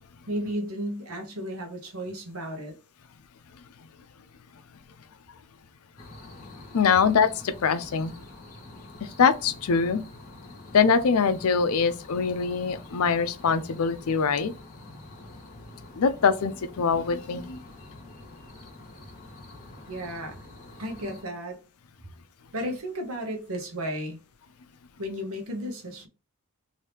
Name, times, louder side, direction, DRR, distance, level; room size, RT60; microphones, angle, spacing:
voice 1, 0.3-2.7 19.9-20.4 20.8-21.6 22.5-24.2 25.0-26.1, equal, 75° right, 0.9 m, -33 dB
sound 1, 6.0-21.2, left 2 dB, 40° left, 1.1 m, -46 dB
voice 2, 6.7-8.1 9.0-10.0 10.7-14.5 16.0-17.6, left 5 dB, 80° left, 0.5 m, -23 dB
2.9 x 2.7 x 3.3 m
head